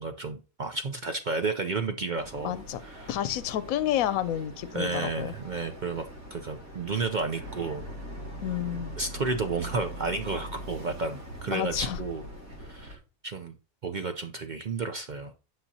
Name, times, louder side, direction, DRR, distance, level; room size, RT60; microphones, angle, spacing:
voice 1, 0.0-3.1 4.7-6.0 6.3-7.8 9.0-12.2 12.6-13.5 13.8-15.3, right 3 dB, 50° right, 0.6 m, -32 dB
Boat Water vehicle, 2.2-12.9, equal, 80° right, 2.7 m, -42 dB
voice 2, 2.4-2.8 3.1-5.3 8.4-9.0 11.5-12.0, left 11 dB, 80° left, 1.0 m, -30 dB
9.9 x 5.8 x 2.8 m
omnidirectional pair, 1.4 m